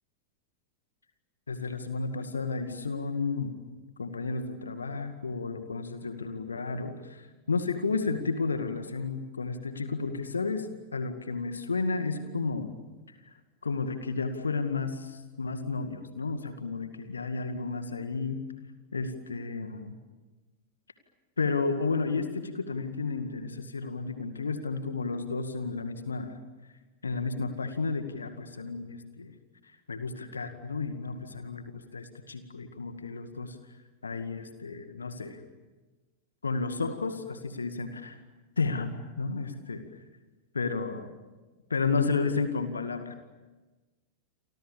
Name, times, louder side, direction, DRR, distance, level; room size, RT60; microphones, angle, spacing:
voice 1, 1.5-3.6 4.0-10.7 10.9-12.7 13.6-18.4 18.9-20.0 21.4-26.4 27.0-29.3 29.9-33.6 34.0-35.4 36.4-38.2 38.6-39.8 40.5-41.1 41.7-43.2, left 4 dB, 75° left, 9 dB, 2.1 m, -32 dB
29.5 x 25.5 x 7.2 m, 1.2 s
figure-of-eight pair, 90°, 0 cm